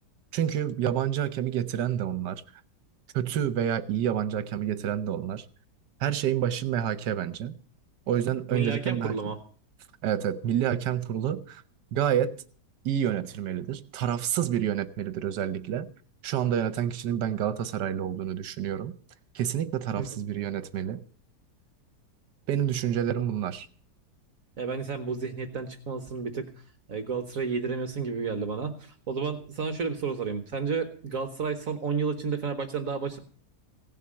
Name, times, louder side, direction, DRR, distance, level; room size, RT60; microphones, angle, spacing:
voice 1, 0.3-2.4 3.1-5.5 6.0-7.6 8.1-9.1 10.0-11.6 11.9-12.3 12.8-15.9 16.2-18.9 19.3-21.0 22.5-23.7, right 10 dB, 80° right, 1.4 m, -28 dB
voice 2, 8.5-9.4 20.0-20.1 24.6-26.5 26.9-33.2, right 5 dB, 55° right, 1.5 m, -31 dB
17.0 x 7.7 x 7.6 m
omnidirectional pair, 1.8 m